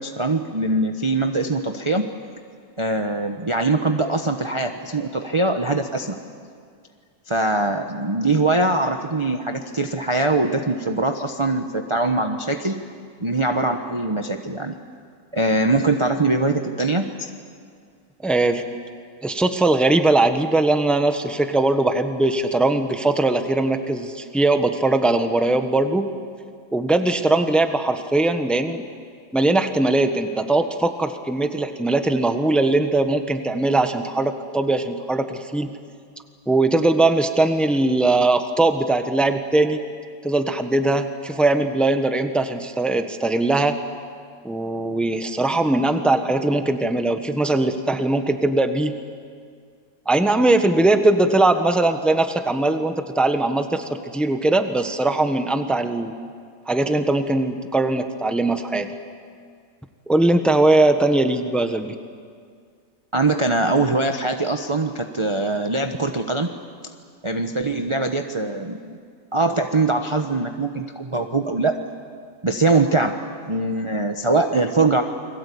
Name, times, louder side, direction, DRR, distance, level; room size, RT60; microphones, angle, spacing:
voice 1, 0.0-2.1 2.8-6.2 7.3-12.8 13.2-14.7 15.3-17.3 63.1-66.5 67.2-69.0 69.3-71.7 72.4-73.1 73.4-75.0, right 2 dB, 20° right, 4 dB, 0.9 m, -22 dB
voice 2, 18.2-18.6 19.2-26.1 26.7-28.9 29.3-35.8 36.5-39.8 40.2-43.8 44.4-48.9 50.0-56.1 56.7-58.9 60.1-62.0, right 2 dB, ahead, 7 dB, 1.1 m, -20 dB
29.5 x 22.5 x 8.5 m, 2.1 s
omnidirectional pair, 1.9 m